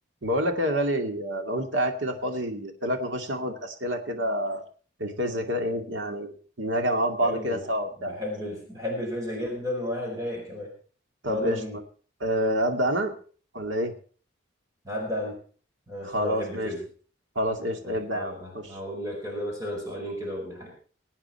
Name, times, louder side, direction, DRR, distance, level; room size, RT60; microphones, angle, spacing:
voice 1, 0.2-4.6 5.0-8.1 11.2-11.6 12.2-13.1 13.5-13.9 16.1-16.7 17.4-18.8, equal, 75° right, 5 dB, 2.3 m, -28 dB
voice 2, 7.2-7.6 8.0-10.7 11.3-11.8 14.8-15.4 15.9-16.8 17.8-20.7, left 1 dB, 15° right, -1 dB, 4.9 m, -33 dB
23.0 x 9.0 x 4.4 m, 0.42 s
head